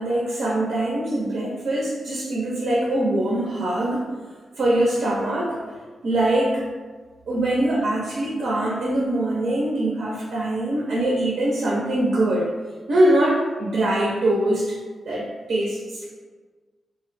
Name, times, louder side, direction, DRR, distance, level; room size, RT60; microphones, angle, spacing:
voice 1, 0.0-4.0 4.6-5.6 6.0-6.6 7.3-12.5 12.9-14.8 15.1-16.1, right 1 dB, 75° right, -4 dB, 0.5 m, -23 dB
2.5 x 2.1 x 3.9 m, 1.4 s
supercardioid pair, 50°, 0 cm